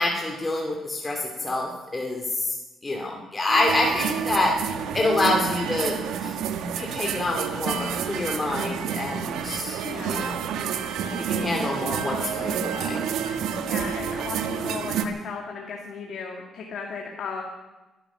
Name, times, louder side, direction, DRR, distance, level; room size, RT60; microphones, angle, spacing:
voice 1, 0.0-2.6 2.8-4.6 4.9-6.3 6.8-9.8 10.1-10.4 11.2-13.0, left 2 dB, 20° left, 0 dB, 2.4 m, -27 dB
sound 1, 3.5-15.0, right 7 dB, 85° right, 1.2 m, -29 dB
voice 2, 9.8-10.3 13.6-17.4, left 5 dB, 65° left, 1 dB, 2.0 m, -36 dB
20.5 x 11.5 x 6.1 m, 1.1 s
cardioid pair, 90°, 0 cm